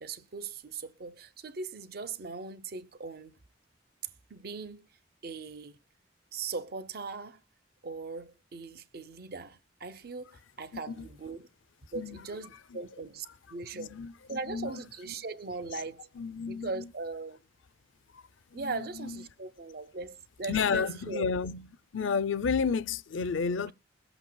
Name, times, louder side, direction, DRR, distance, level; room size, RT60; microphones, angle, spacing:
voice 1, 0.0-3.4 4.3-4.9 5.2-5.8 6.3-7.4 7.8-11.5 11.9-14.0 14.3-16.1 16.5-17.4 18.5-21.2, right 4 dB, 50° right, 0.7 m, -39 dB
voice 2, 13.7-14.7 16.2-16.8 18.1-18.2 18.5-19.2 20.5-21.7 21.9-23.7, left 5 dB, 85° left, 0.5 m, -31 dB
21.5 x 7.9 x 2.2 m
head